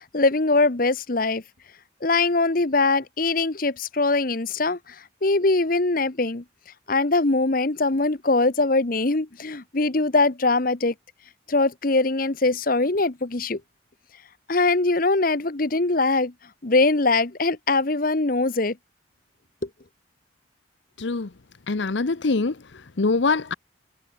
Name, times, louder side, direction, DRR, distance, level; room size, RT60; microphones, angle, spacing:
voice 1, 0.0-1.4 2.0-4.9 5.2-6.4 6.9-10.9 11.5-13.6 14.5-16.3 16.6-18.8, left 3 dB, 45° left, 1.0 m, -22 dB
voice 2, 21.0-21.3 21.7-23.5, left 3 dB, 65° left, 0.8 m, -24 dB
head